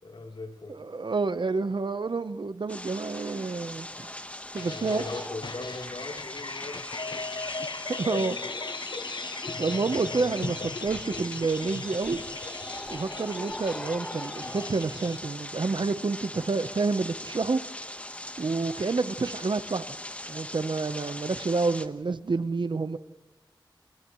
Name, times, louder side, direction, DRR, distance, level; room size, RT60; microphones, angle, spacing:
voice 1, 0.0-0.8 4.7-7.5 8.0-8.6 10.1-10.3, left 3 dB, 80° left, 3.5 m, -40 dB
voice 2, 0.8-4.1 4.5-5.0 7.9-8.4 9.6-12.2 12.9-17.6 18.4-19.9 20.3-23.0, right 4 dB, 70° right, 0.9 m, -29 dB
sound 1, 2.7-21.9, left 1 dB, 15° left, 1.2 m, -40 dB
sound 2, 4.6-15.2, left 4 dB, 60° left, 0.7 m, -38 dB
sound 3, 7.8-7.9 10.8-11.3 12.0-13.6, equal, ahead, 6.3 m, -55 dB
29.0 x 28.0 x 3.2 m
wide cardioid pair, 80°, 8 cm